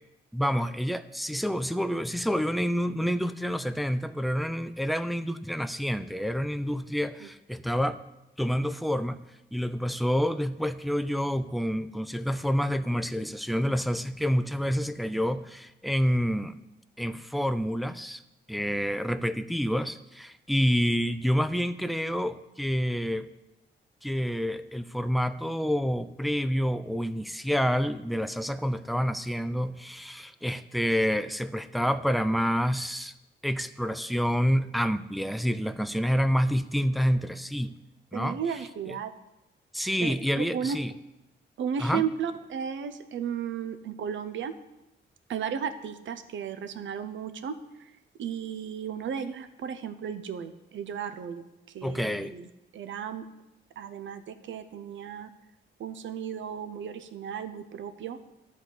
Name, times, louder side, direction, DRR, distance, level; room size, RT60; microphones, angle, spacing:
voice 1, 0.3-8.0 8.4-9.2 9.5-16.6 17.0-18.2 18.5-23.3 24.0-33.1 33.4-37.7 38.1-38.4 38.9-39.0 39.7-40.9 41.8-42.0 51.8-52.3, equal, ahead, 11 dB, 0.5 m, -28 dB
voice 2, 38.1-39.1 40.0-40.8 41.6-44.5 45.3-51.5 51.7-53.3 53.8-55.3 55.8-58.2, right 7 dB, 85° right, 11 dB, 0.7 m, -34 dB
11.5 x 4.2 x 8.0 m, 0.93 s
cardioid pair, 95°, 19 cm